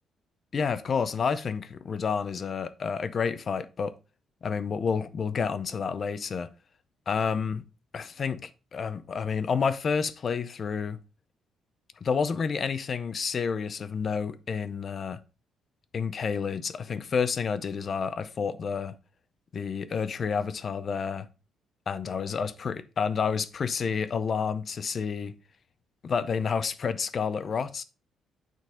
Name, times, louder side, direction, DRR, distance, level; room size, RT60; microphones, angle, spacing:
voice 1, 0.5-3.9 4.4-6.5 7.1-7.6 7.9-11.0 12.0-15.2 15.9-19.0 19.5-21.3 21.9-25.3 26.0-27.8, left 6 dB, 40° left, 0.5 m, -29 dB
9.1 x 3.9 x 3.6 m
cardioid pair, 150°, 0 cm